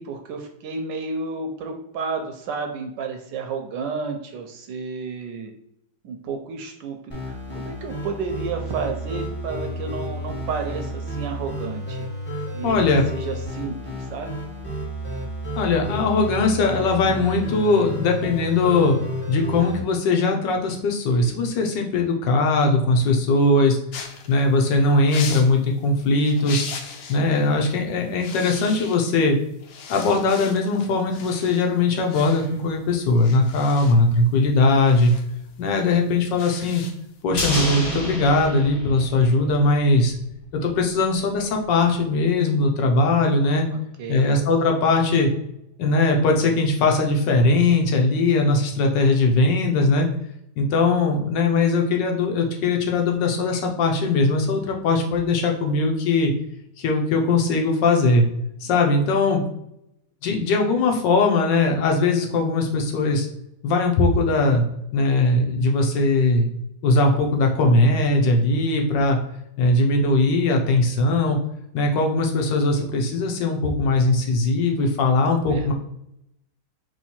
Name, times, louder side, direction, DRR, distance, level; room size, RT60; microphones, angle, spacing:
voice 1, 0.0-5.5 6.0-12.1 12.5-14.4 33.7-33.8 44.0-44.3 75.4-75.7, right 4 dB, 70° right, 5 dB, 1.1 m, -32 dB
sound 1, 7.1-19.8, equal, 10° left, 0.8 m, -31 dB
voice 2, 12.6-13.0 15.6-23.8 24.3-26.7 27.1-29.4 29.9-35.1 35.6-36.8 37.2-40.1 40.5-43.6 44.1-45.3 45.8-50.1 50.6-56.3 56.8-58.3 58.6-59.4 60.2-63.3 63.6-64.6 64.9-66.5 66.8-69.2 69.6-71.4 71.7-75.7, left 3 dB, 65° left, 2 dB, 1.4 m, -20 dB
sound 2, 23.9-27.3 27.6-27.8 28.1-29.3 29.6-37.2, left 6 dB, 85° left, 1.6 m, -38 dB
sound 3, 37.4-39.8 40.0-40.1, left 1 dB, 30° left, 1.7 m, -28 dB
3.6 x 3.1 x 4.2 m, 0.79 s
omnidirectional pair, 2.3 m